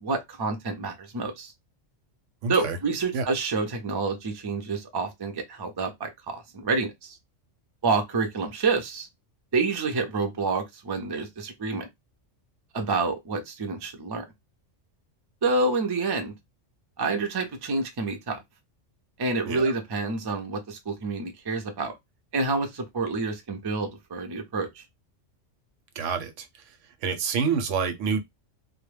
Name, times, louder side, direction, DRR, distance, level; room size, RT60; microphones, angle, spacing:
voice 1, 0.0-1.5 2.5-7.2 7.8-9.1 9.5-11.9 12.7-14.2 15.4-16.3 17.0-18.4 19.2-21.9 22.3-24.8, right 3 dB, 40° right, 0.3 m, -28 dB
voice 2, 2.4-2.8 3.1-3.2 19.4-19.7 26.0-26.5 27.0-28.2, right 5 dB, 80° right, 0.9 m, -27 dB
2.2 x 2.0 x 3.1 m
omnidirectional pair, 1.3 m